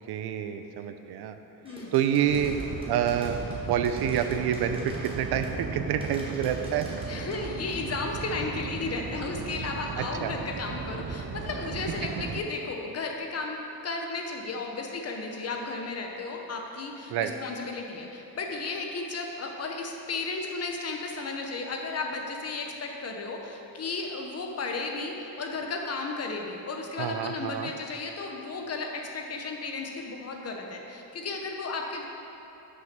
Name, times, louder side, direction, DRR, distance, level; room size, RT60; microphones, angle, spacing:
voice 1, 0.1-1.4 1.9-2.6 2.9-3.4 3.7-6.9 10.0-10.3 17.1-17.3 27.0-27.7, right 9 dB, 80° right, 8 dB, 0.6 m, -27 dB
sound 1, 1.7-5.7 6.0-7.4, right 1 dB, 15° right, 1.0 m, -45 dB
sound 2, 2.3-12.4, right 4 dB, 35° right, 0.4 m, -36 dB
voice 2, 7.1-13.6 13.8-32.1, left 3 dB, 40° left, 2 dB, 0.8 m, -34 dB
6.3 x 5.5 x 5.9 m, 2.9 s
cardioid pair, 150°, 38 cm